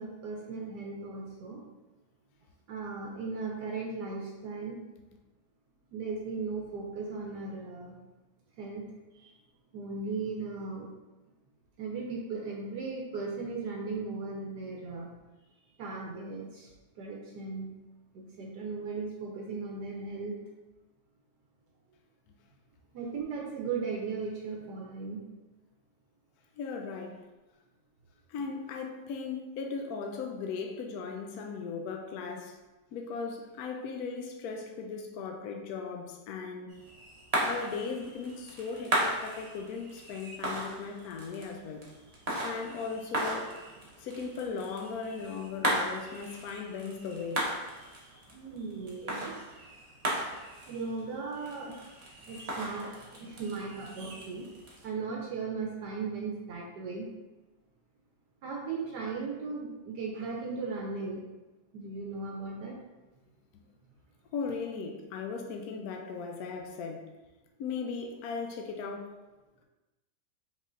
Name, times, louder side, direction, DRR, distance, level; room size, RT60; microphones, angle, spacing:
voice 1, 0.0-1.6 2.7-4.8 5.9-8.0 8.6-8.9 9.1-9.4 9.7-10.9 11.8-15.1 15.8-17.7 18.1-20.4 22.9-25.2 48.3-49.4 50.7-54.5 54.8-57.1 58.4-61.2 61.7-62.8, right 4 dB, 70° right, -1 dB, 1.2 m, -37 dB
voice 2, 26.6-27.2 28.3-32.6 32.9-36.7 37.4-41.9 42.4-43.5 44.0-47.5 64.3-67.1 67.6-69.2, left 5 dB, 70° left, 3 dB, 0.9 m, -37 dB
sound 1, 36.7-54.8, right 1 dB, 35° right, 0.6 m, -37 dB
5.3 x 3.7 x 2.5 m, 1.1 s
omnidirectional pair, 1.9 m